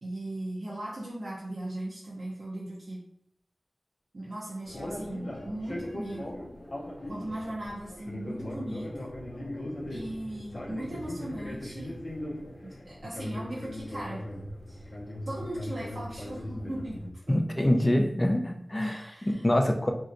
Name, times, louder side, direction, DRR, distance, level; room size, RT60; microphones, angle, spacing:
voice 1, 0.0-3.0 4.1-6.3 7.1-9.1 9.9-12.0 12.6-14.2 14.7-14.8 15.3-17.0 17.3-17.4 18.8-19.5, right 1 dB, 65° right, -6 dB, 0.6 m, -38 dB
sound 1, 4.6-17.1, left 1 dB, 70° left, 0.6 m, -39 dB
voice 2, 17.3-19.9, left 1 dB, 30° left, 3 dB, 0.4 m, -25 dB
3.1 x 2.7 x 2.5 m, 0.74 s
wide cardioid pair, 55°, 0 cm